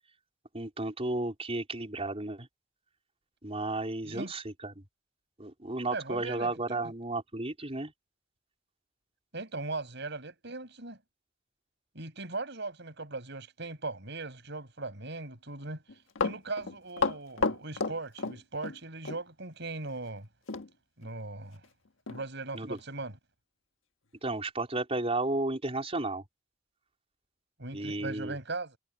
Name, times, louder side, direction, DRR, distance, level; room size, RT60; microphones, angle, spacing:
voice 1, 0.5-2.5 3.4-4.8 5.4-7.9 22.5-22.8 24.2-26.2 27.7-28.4, right 2 dB, 30° right, 4.5 m, -33 dB
voice 2, 5.9-6.5 9.3-11.0 12.0-15.8 16.2-20.3 21.0-21.6 22.1-23.2 27.6-28.8, right 3 dB, 60° right, 7.0 m, -39 dB
Run, 15.9-18.8 19.0-19.2 20.5-20.7 21.0-21.1 21.6-21.7 22.1-22.2 22.8-22.9, left 4 dB, 85° left, 1.5 m, -31 dB
head